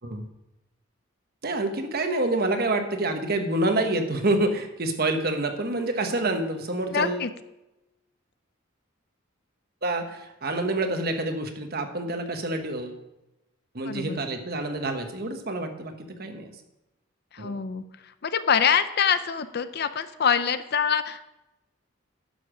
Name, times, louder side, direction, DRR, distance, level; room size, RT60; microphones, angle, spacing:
voice 1, 1.4-7.2 9.8-13.0 13.7-15.9 16.2-16.5 17.4-17.5, right 2 dB, 50° right, 6 dB, 1.2 m, -27 dB
voice 2, 6.9-7.3 13.9-14.2 17.3-17.8 18.2-21.3, left 7 dB, 50° left, 12 dB, 0.5 m, -25 dB
11.5 x 7.0 x 5.0 m, 0.94 s
head